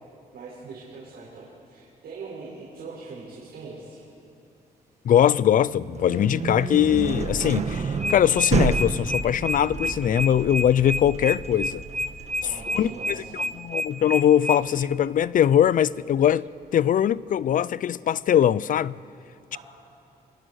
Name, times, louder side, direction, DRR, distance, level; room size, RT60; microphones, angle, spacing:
voice 1, 0.3-4.0 12.4-13.3 19.5-19.6, right 4 dB, 85° right, 6.4 m, -41 dB
voice 2, 5.0-11.8 12.7-13.2 13.5-16.4 16.7-18.9, left 10 dB, 55° left, 0.5 m, -21 dB
sound 1, 5.6-15.4, right 5 dB, 40° right, 1.5 m, -30 dB
sound 2, 7.4-12.9, right 3 dB, 20° right, 3.1 m, -42 dB
sound 3, 8.0-14.6, equal, 5° left, 0.9 m, -29 dB
26.5 x 26.5 x 6.5 m
wide cardioid pair, 140°, 16 cm